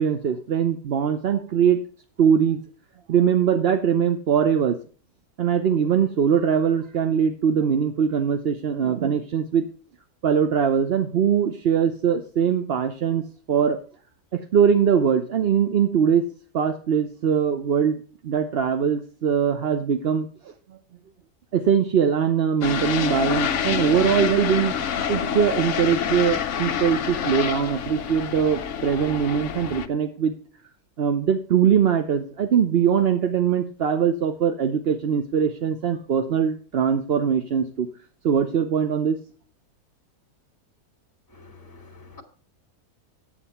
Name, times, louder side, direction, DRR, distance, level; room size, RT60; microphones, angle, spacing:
voice 1, 0.0-1.8 2.2-2.6 3.1-4.8 5.4-9.7 10.2-13.8 14.3-16.3 16.5-20.3 21.5-24.7 25.1-30.3 31.0-37.9 38.2-39.2, right 7 dB, 50° right, 0.8 m, -22 dB
sound 1, 22.6-29.9, left 7 dB, 60° left, 0.9 m, -27 dB
voice 2, 41.3-42.2, left 3 dB, 15° left, 1.9 m, -47 dB
9.6 x 8.3 x 5.6 m
omnidirectional pair, 1.6 m